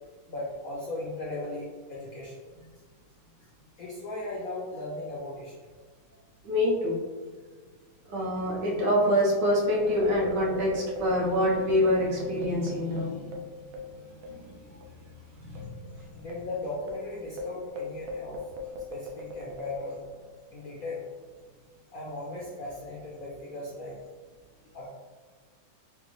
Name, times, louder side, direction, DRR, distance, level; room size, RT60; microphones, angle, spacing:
voice 1, 0.3-2.4 3.4-3.5 3.8-5.5 16.1-18.4 18.9-20.0 20.5-21.1 21.9-24.0 24.7-24.9, left 2 dB, 65° left, -5 dB, 0.8 m, -37 dB
voice 2, 6.4-7.0 8.1-13.2 14.2-14.6 15.4-15.7, left 1 dB, 65° right, -4 dB, 1.4 m, -26 dB
sound 1, 9.7-14.5 14.8-14.9 15.5-20.3, left 1 dB, 85° right, 1.4 m, -40 dB
5.1 x 2.2 x 3.0 m, 1.5 s
omnidirectional pair, 2.2 m